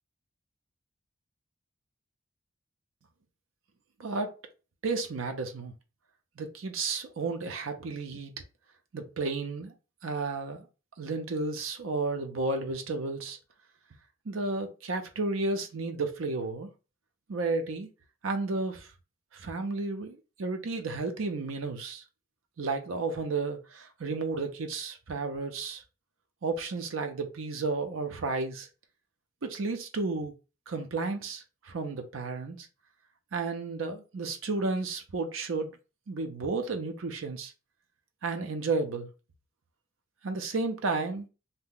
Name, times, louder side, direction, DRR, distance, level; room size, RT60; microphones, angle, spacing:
voice 1, 4.0-4.3 4.8-5.7 6.4-8.3 8.9-9.7 10.0-10.7 11.0-13.4 14.3-16.7 17.3-17.9 18.2-18.9 19.3-22.0 22.6-25.8 26.4-28.7 29.4-30.3 30.7-32.7 33.3-35.7 36.1-37.5 38.2-39.1 40.2-41.3, right 3 dB, 80° right, 0.5 m, -32 dB
2.7 x 2.1 x 3.6 m
head